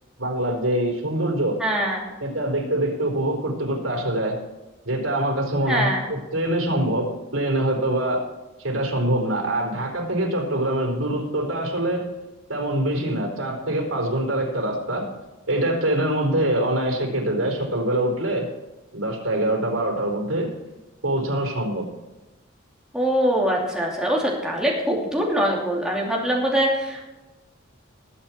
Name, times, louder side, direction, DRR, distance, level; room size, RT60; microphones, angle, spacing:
voice 1, 0.2-1.6 2.2-4.4 4.8-8.3 8.6-12.1 12.5-15.1 15.5-18.5 18.9-20.5 21.0-21.9, right 1 dB, 85° right, 1 dB, 4.2 m, -24 dB
voice 2, 1.6-2.1 5.7-6.1 22.9-27.1, equal, 5° right, -3 dB, 2.7 m, -23 dB
20.5 x 7.9 x 4.4 m, 1.1 s
head